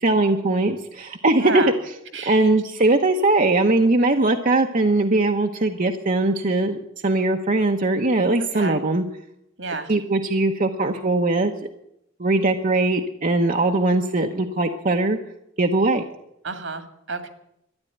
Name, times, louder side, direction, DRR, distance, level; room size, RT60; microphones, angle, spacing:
voice 1, 0.0-1.9 2.3-6.8 7.0-9.0 9.9-11.5 12.2-15.2 15.6-16.0, right 2 dB, 45° right, 3 dB, 1.0 m, -20 dB
voice 2, 1.4-1.7 2.1-2.4 8.6-8.8 9.6-9.9 16.4-16.8 17.1-17.3, right 4 dB, 70° right, 7 dB, 2.1 m, -29 dB
13.5 x 10.5 x 9.3 m, 0.79 s
head